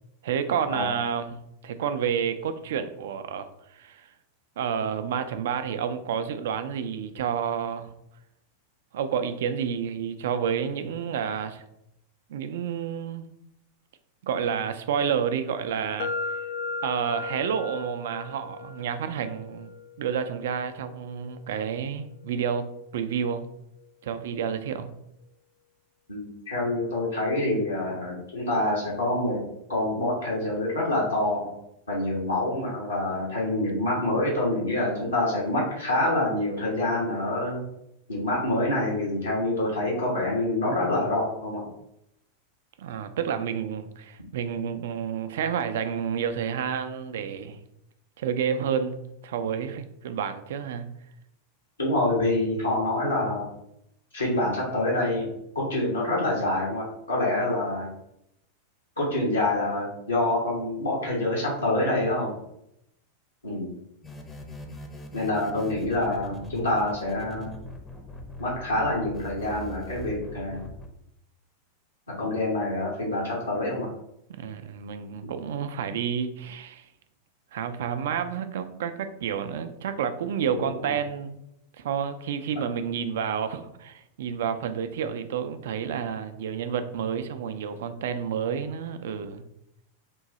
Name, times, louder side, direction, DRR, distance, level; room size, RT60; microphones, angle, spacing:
voice 1, 0.2-1.4 1.6-4.1 4.6-7.9 8.9-11.6 12.3-13.3 14.2-16.4 16.8-19.7 20.0-22.7 22.9-23.5 24.0-24.9 42.8-47.6 48.2-50.9 74.3-76.9 77.5-81.4 81.8-89.4, right 7 dB, 55° right, 9 dB, 0.4 m, -30 dB
sound 1, 16.0-23.9, left 4 dB, 50° left, 0.3 m, -38 dB
voice 2, 26.1-29.4 29.7-31.5 31.9-37.6 38.1-41.7 51.8-53.5 54.1-55.3 55.5-57.9 59.0-62.4 63.4-63.7 65.1-67.5 68.4-70.6 72.1-73.9 80.5-80.9, left 1 dB, 80° left, -6 dB, 1.1 m, -26 dB
sound 2, 64.0-70.9, left 1 dB, 15° left, 0.6 m, -41 dB
3.8 x 2.6 x 4.1 m, 0.80 s
figure-of-eight pair, 90°, 0 cm